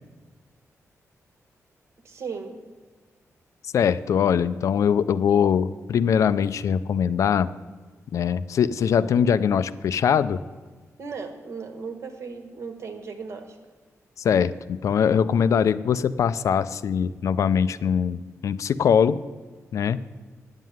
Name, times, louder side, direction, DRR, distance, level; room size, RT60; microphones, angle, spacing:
voice 1, 2.0-2.6 11.0-13.6, right 5 dB, 55° right, 6 dB, 1.5 m, -36 dB
voice 2, 3.7-7.5 8.1-10.4 14.2-19.2 19.7-20.0, left 7 dB, 65° left, 14 dB, 0.4 m, -22 dB
9.7 x 7.5 x 9.3 m, 1.4 s
wide cardioid pair, 175°, 6 cm